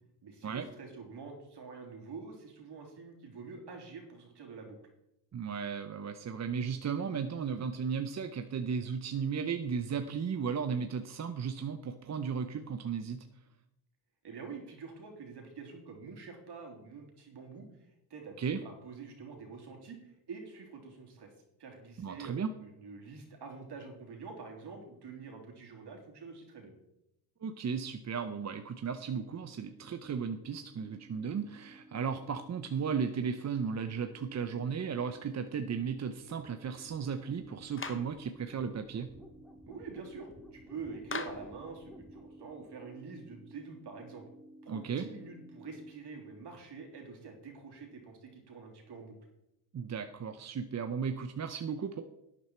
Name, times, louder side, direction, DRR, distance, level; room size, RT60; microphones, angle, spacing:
voice 1, 0.2-4.8 14.2-17.7 18.1-21.3 21.6-26.7 39.7-44.2 44.6-49.2, right 4 dB, 60° right, 1 dB, 3.4 m, -46 dB
voice 2, 5.3-13.2 18.4-18.6 22.0-22.5 27.4-39.1 44.7-45.0 49.7-52.0, right 6 dB, 35° right, 8 dB, 0.8 m, -35 dB
sound 1, 29.1-45.9, right 1 dB, ahead, 2.1 m, -55 dB
Clapping, 37.8-38.1 41.1-41.5, left 5 dB, 25° left, 1.1 m, -39 dB
11.5 x 9.3 x 4.5 m, 0.86 s
cardioid pair, 85°, 46 cm